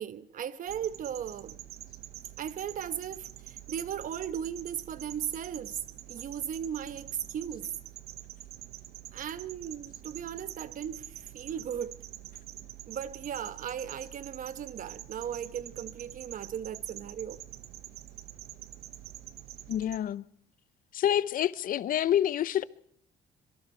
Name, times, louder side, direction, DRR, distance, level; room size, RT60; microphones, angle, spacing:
voice 1, 0.0-1.5 2.4-5.8 6.1-7.7 9.1-12.0 12.9-17.4, right 9 dB, 50° right, 1.2 m, -37 dB
sound 1, 0.7-20.0, right 13 dB, 70° right, 1.2 m, -46 dB
voice 2, 19.7-20.2 20.9-22.6, left 11 dB, 55° left, 0.8 m, -27 dB
25.5 x 23.0 x 4.5 m
cardioid pair, 110°, 17 cm